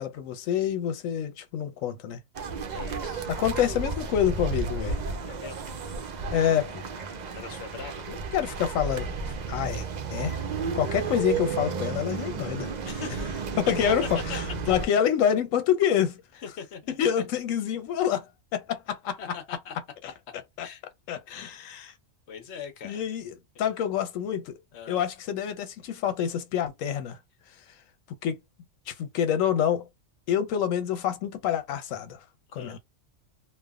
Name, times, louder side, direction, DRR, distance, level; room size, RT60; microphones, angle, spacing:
voice 1, 0.0-2.2 3.3-5.0 6.3-6.8 8.3-9.1 9.5-10.4 10.7-12.7 13.6-14.0 14.3-14.4 14.7-16.2 17.0-18.3 18.5-19.2 20.6-20.7 21.1-21.9 22.8-23.3 23.6-24.5 24.9-27.2 28.2-28.4 28.9-29.9 30.3-32.2 32.5-32.8, left 9 dB, 85° left, 1.0 m, -27 dB
sound 1, 2.3-14.9, right 4 dB, 70° right, 0.4 m, -33 dB
voice 2, 2.7-3.3 5.3-5.6 7.3-8.0 12.8-13.5 13.9-14.0 14.3-14.4 16.3-17.1 19.2-19.7 20.6-20.8 21.3-21.4 21.8-22.0 22.3-23.2 23.5-23.7 24.7-25.0 32.5-32.8, left 6 dB, 60° left, 1.0 m, -41 dB
3.2 x 2.0 x 2.3 m
omnidirectional pair, 1.3 m